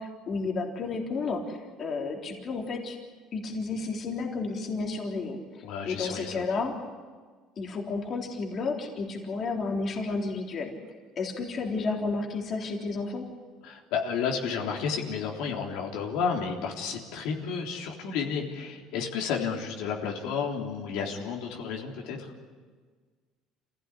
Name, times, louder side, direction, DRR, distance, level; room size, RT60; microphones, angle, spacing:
voice 1, 0.0-3.0 3.3-6.8 7.6-10.7 11.2-13.3, left 3 dB, 35° left, 0 dB, 3.6 m, -32 dB
voice 2, 5.6-6.4 13.6-22.3, left 6 dB, 75° left, 0 dB, 3.6 m, -31 dB
28.0 x 16.5 x 10.0 m, 1.5 s
cardioid pair, 145°, 0 cm